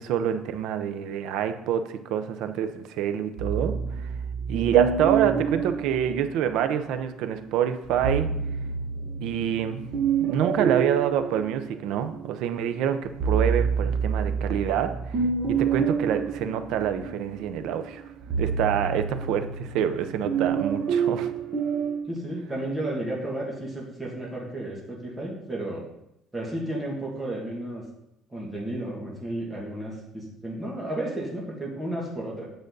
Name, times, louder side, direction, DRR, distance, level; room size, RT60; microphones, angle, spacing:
voice 1, 0.0-3.8 4.5-8.3 9.2-9.8 10.2-15.2 15.5-18.0 18.4-21.3, right 9 dB, 65° right, 9 dB, 0.7 m, -26 dB
sound 1, 3.4-6.9 7.8-12.3 12.7-22.0, right 6 dB, 35° right, 1.7 m, -28 dB
voice 2, 22.0-25.9 26.3-27.8 28.3-32.5, right 1 dB, 10° right, -4 dB, 2.2 m, -33 dB
9.1 x 6.8 x 4.0 m, 0.82 s
cardioid pair, 170°, 0 cm